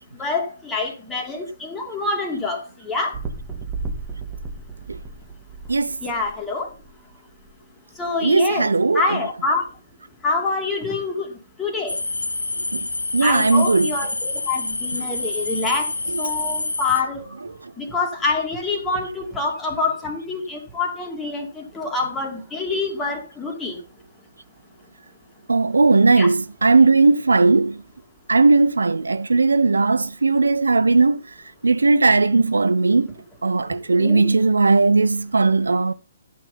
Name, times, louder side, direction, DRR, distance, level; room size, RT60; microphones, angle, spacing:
voice 1, 0.2-3.1 6.0-6.7 8.0-8.7 8.9-9.6 10.2-11.3 11.6-12.0 13.2-15.9 16.2-17.2 17.8-23.7 26.2-26.3 34.0-34.4, left 3 dB, 10° left, 2.7 m, -26 dB
sound 1, 3.1-6.9 7.5-7.6, right 4 dB, 15° right, 2.2 m, -34 dB
voice 2, 8.2-9.3 12.7-12.9 13.1-14.0 16.1-16.2 25.5-27.8 28.3-31.2 31.6-33.1 33.4-35.9, right 3 dB, 70° right, 0.6 m, -17 dB
sound 2, 11.9-17.0, left 3 dB, 75° left, 1.0 m, -27 dB
11.5 x 6.2 x 5.7 m
figure-of-eight pair, 130°, 0 cm